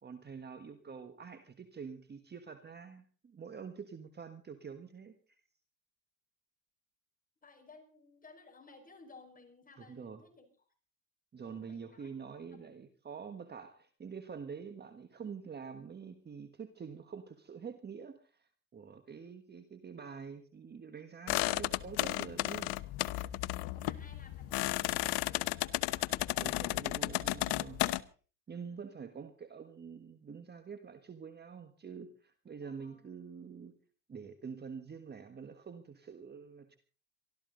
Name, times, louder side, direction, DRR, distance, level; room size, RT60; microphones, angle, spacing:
voice 1, 0.0-5.2 9.8-10.2 11.3-22.7 26.4-28.1 28.5-33.7 34.1-36.8, right 6 dB, 20° right, 9 dB, 1.5 m, -46 dB
voice 2, 7.4-10.5 11.4-12.1 12.5-12.7 23.6-27.2 28.5-28.8 32.6-33.0, left 3 dB, 15° left, 4 dB, 5.2 m, -58 dB
sound 1, 21.3-28.0, left 18 dB, 55° left, 0.9 m, -33 dB
24.0 x 14.0 x 3.9 m, 0.39 s
supercardioid pair, 115°, 48 cm